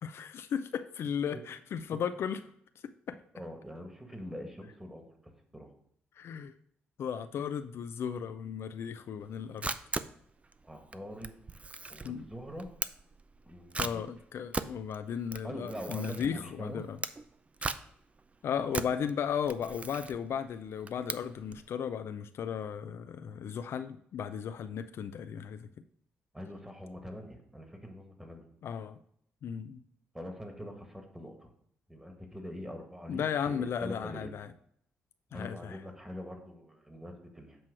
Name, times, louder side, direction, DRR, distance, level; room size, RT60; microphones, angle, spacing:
voice 1, 0.0-2.4 3.1-3.2 6.2-6.5 7.0-9.7 12.0-12.3 13.8-17.0 18.4-25.7 28.6-29.0 29.4-29.8 33.1-34.5 35.3-35.8, left 7 dB, 65° left, 10 dB, 0.4 m, -35 dB
voice 2, 3.3-5.2 5.5-5.7 10.6-11.6 11.9-12.7 13.4-14.0 15.4-16.8 18.6-18.8 26.3-28.5 30.1-31.5 31.9-34.3 35.3-37.6, equal, 10° right, 4 dB, 1.8 m, -43 dB
Camera, 9.2-21.7, right 3 dB, 30° right, 0.4 m, -39 dB
7.7 x 3.1 x 6.1 m, 0.67 s
supercardioid pair, 55°, 5 cm